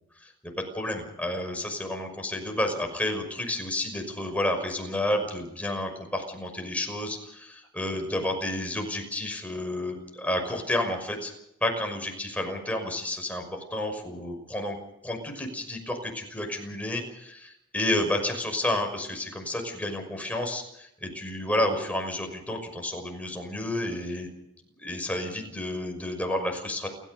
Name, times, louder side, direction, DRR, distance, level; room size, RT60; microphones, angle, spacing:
voice 1, 0.4-11.3 11.6-13.4 13.7-14.8 15.0-24.3 24.8-26.9, left 1 dB, 5° left, 3 dB, 5.9 m, -30 dB
29.0 x 15.0 x 6.8 m, 0.80 s
head